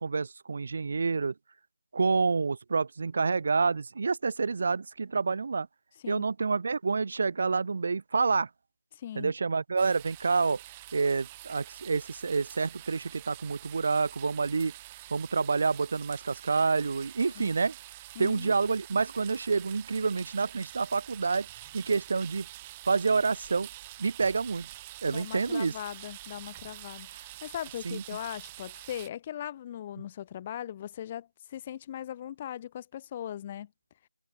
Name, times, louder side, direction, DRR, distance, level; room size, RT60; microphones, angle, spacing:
voice 1, 0.0-1.3 1.9-5.7 6.1-8.5 9.2-10.6 10.9-14.7 15.1-17.7 18.2-21.5 21.7-22.5 22.9-23.7 24.0-24.7 25.0-25.7 27.8-28.0, right 4 dB, 35° right, 2.3 m, -28 dB
voice 2, 8.9-9.3 17.4-17.5 18.2-18.5 25.1-33.7, left 11 dB, 15° left, 1.9 m, -39 dB
sound 1, 9.8-29.1, right 17 dB, 10° right, 1.0 m, -47 dB
figure-of-eight pair, 165°, 0 cm